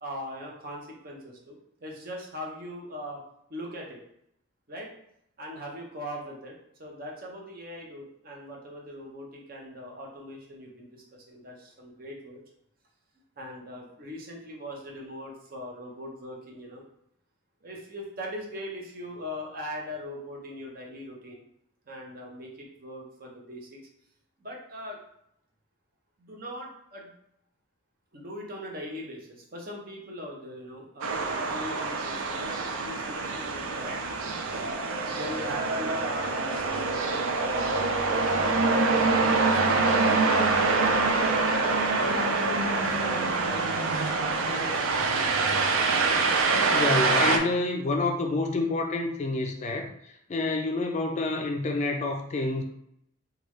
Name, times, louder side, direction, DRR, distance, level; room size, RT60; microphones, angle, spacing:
voice 1, 0.0-3.2 3.5-4.0 4.7-4.9 5.4-12.4 13.4-16.8 17.6-21.4 21.9-23.8 24.4-25.0 26.2-27.1 28.1-34.0 35.1-38.7 39.1-41.2 41.5-43.6 44.2-44.8, equal, 45° right, -1 dB, 0.7 m, -40 dB
sound 1, 31.0-47.4, right 3 dB, 85° right, 0.4 m, -25 dB
voice 2, 46.7-52.6, left 2 dB, 35° left, 3 dB, 0.3 m, -28 dB
3.3 x 2.3 x 3.1 m, 0.76 s
head